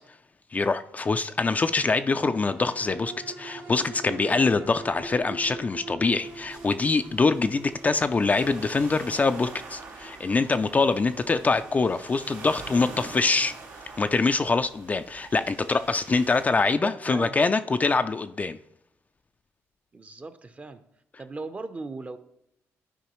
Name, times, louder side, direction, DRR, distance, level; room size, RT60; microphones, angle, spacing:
voice 1, 0.5-13.5 14.0-18.6, left 4 dB, 30° left, 9 dB, 0.3 m, -24 dB
sound 1, 1.8-16.5 16.9-17.0, right 3 dB, 55° right, 1.2 m, -45 dB
sound 2, 6.2-16.4, right 3 dB, 75° right, 2.1 m, -45 dB
voice 2, 16.8-17.4 19.9-20.8 21.2-22.2, right 3 dB, 25° right, 10 dB, 0.6 m, -37 dB
11.5 x 4.7 x 3.0 m, 0.79 s
cardioid pair, 80°, 5 cm